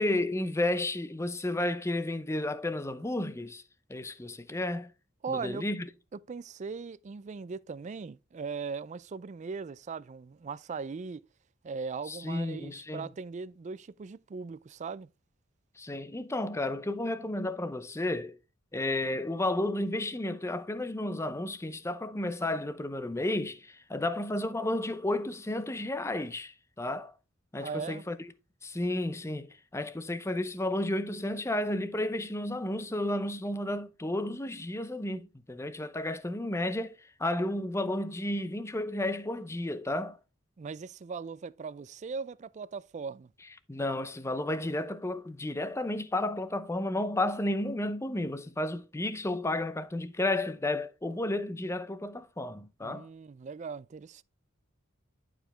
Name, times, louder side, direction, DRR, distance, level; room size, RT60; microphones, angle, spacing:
voice 1, 0.0-3.6 3.9-4.9 5.3-5.8 12.1-13.1 15.8-18.4 18.7-27.1 27.5-28.2 28.6-36.9 37.2-40.2 43.7-53.1, left 1 dB, 15° left, 0.6 m, -32 dB
voice 2, 5.2-5.6 6.1-11.2 11.6-15.1 27.6-28.0 40.6-43.3 52.8-54.2, right 5 dB, 35° right, 0.3 m, -39 dB
11.0 x 5.0 x 3.3 m
head